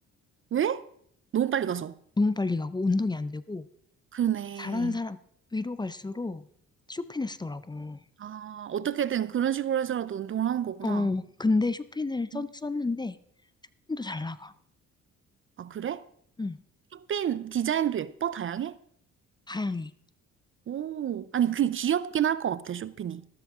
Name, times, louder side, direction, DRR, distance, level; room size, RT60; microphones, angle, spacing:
voice 1, 0.5-0.8 1.3-2.0 4.1-5.0 8.2-11.1 12.3-12.4 15.6-16.0 16.9-18.8 20.7-23.2, right 9 dB, 45° right, 0.5 m, -29 dB
voice 2, 2.2-3.7 4.6-5.2 5.5-6.5 6.9-8.0 10.8-13.2 13.9-14.5 16.4-16.6 19.5-19.9, left 3 dB, 15° left, 0.6 m, -29 dB
13.5 x 12.5 x 3.6 m
cardioid pair, 90°, 30 cm